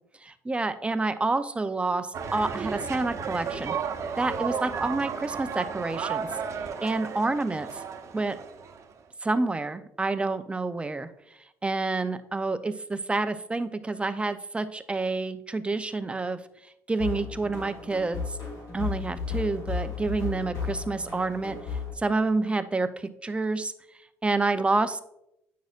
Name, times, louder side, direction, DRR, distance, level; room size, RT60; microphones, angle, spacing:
voice 1, 0.2-3.8 4.2-6.3 6.8-7.7 8.1-8.4 9.2-11.1 11.6-16.4 16.9-18.4 18.7-23.7 24.2-25.0, right 3 dB, 15° right, 11 dB, 0.6 m, -28 dB
sound 1, 2.1-9.0, right 6 dB, 50° right, 0.8 m, -34 dB
sound 2, 16.9-21.9, left 5 dB, 65° left, 2.8 m, -34 dB
9.2 x 6.2 x 2.5 m, 0.80 s
supercardioid pair, 70°, 6 cm